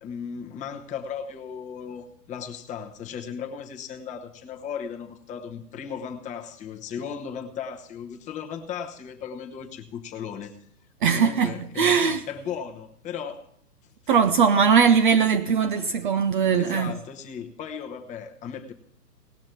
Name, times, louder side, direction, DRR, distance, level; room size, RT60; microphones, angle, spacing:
voice 1, 0.0-10.5 11.0-12.0 12.3-13.5 16.6-18.7, left 7 dB, 15° left, 1.0 m, -36 dB
voice 2, 11.0-12.2 14.1-17.0, right 6 dB, 35° right, 0.5 m, -20 dB
18.5 x 6.3 x 6.0 m
hypercardioid pair, 140°, 48 cm